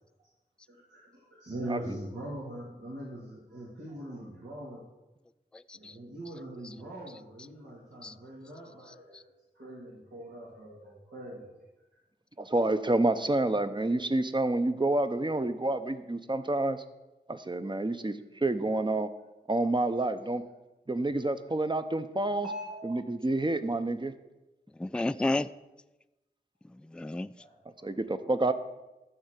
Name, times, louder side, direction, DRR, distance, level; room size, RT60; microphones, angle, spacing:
voice 1, 0.7-4.8 5.7-9.3 9.5-11.5 22.4-22.9 27.4-27.9 28.2-28.4, right 1 dB, 85° right, -7 dB, 2.6 m, -42 dB
voice 2, 5.5-6.0 6.6-6.7 8.0-8.1 9.1-9.2 24.8-25.5 26.7-27.3, left 2 dB, 5° left, 14 dB, 0.3 m, -32 dB
voice 3, 12.4-16.8 17.3-19.1 19.5-20.4 20.9-22.5 22.8-24.1 27.8-28.5, right 2 dB, 25° right, 10 dB, 0.8 m, -28 dB
12.5 x 4.3 x 8.2 m, 1.0 s
wide cardioid pair, 50°, 18 cm